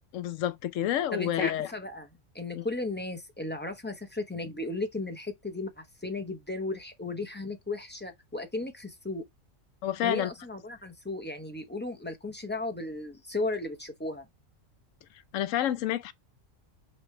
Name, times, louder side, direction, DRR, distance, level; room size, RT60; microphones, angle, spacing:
voice 1, 0.1-1.7 2.5-2.6 9.8-10.3 15.3-16.1, left 11 dB, 80° left, 1.0 m, -29 dB
voice 2, 1.1-2.1 2.3-9.2 10.0-14.3, left 2 dB, 10° left, 0.6 m, -35 dB
5.3 x 3.1 x 3.2 m
omnidirectional pair, 1.3 m